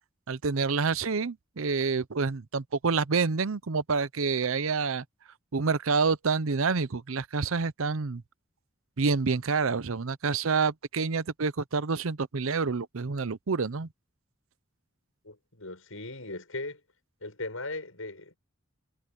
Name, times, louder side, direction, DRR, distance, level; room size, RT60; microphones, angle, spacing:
voice 1, 0.3-5.0 5.5-8.2 9.0-13.9, right 4 dB, 75° right, 0.7 m, -28 dB
voice 2, 15.2-16.8 17.2-18.4, left 2 dB, 75° left, 7.2 m, -38 dB
head